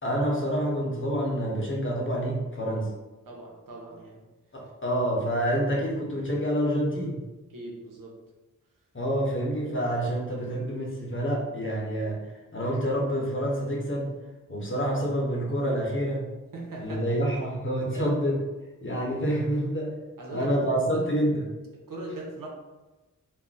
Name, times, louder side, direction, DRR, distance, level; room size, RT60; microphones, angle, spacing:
voice 1, 0.0-2.9 4.5-7.2 8.9-12.2 12.5-14.1 14.5-16.3 16.8-18.4 18.8-19.9 20.3-21.4, equal, 40° left, -3 dB, 0.8 m, -27 dB
voice 2, 3.2-4.2 7.5-8.2 16.5-17.0 17.9-18.1 20.2-21.1 21.7-22.5, right 2 dB, 80° right, -1 dB, 0.7 m, -39 dB
2.4 x 2.0 x 3.9 m, 1.1 s
wide cardioid pair, 65°, 33 cm